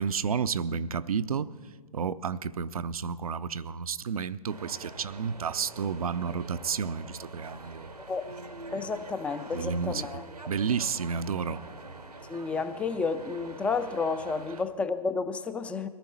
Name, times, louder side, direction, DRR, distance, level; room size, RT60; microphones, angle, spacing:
voice 1, 0.0-1.5 1.9-7.9 9.5-10.2 10.5-11.6, right 6 dB, 65° right, 0.6 m, -31 dB
sound 1, 4.5-14.6, right 2 dB, 90° right, 1.2 m, -45 dB
voice 2, 8.7-10.2 12.3-15.9, left 4 dB, 5° left, 0.4 m, -31 dB
22.0 x 14.5 x 4.3 m
figure-of-eight pair, 120°, 20 cm